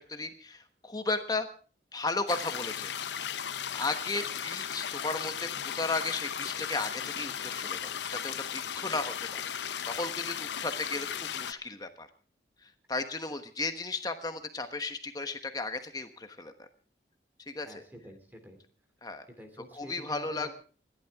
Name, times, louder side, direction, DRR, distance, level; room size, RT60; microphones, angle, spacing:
voice 1, 0.0-1.5 1.9-2.9 3.3-5.5 5.7-12.1 12.6-16.7 17.5-17.8 19.0-19.2 19.7-20.5, left 3 dB, 20° left, 7 dB, 1.2 m, -35 dB
sound 1, 2.3-11.5, left 8 dB, 80° left, 0.7 m, -36 dB
voice 2, 17.6-18.6 19.4-20.5, equal, 10° right, 6 dB, 2.7 m, -48 dB
28.5 x 12.0 x 3.6 m, 0.40 s
head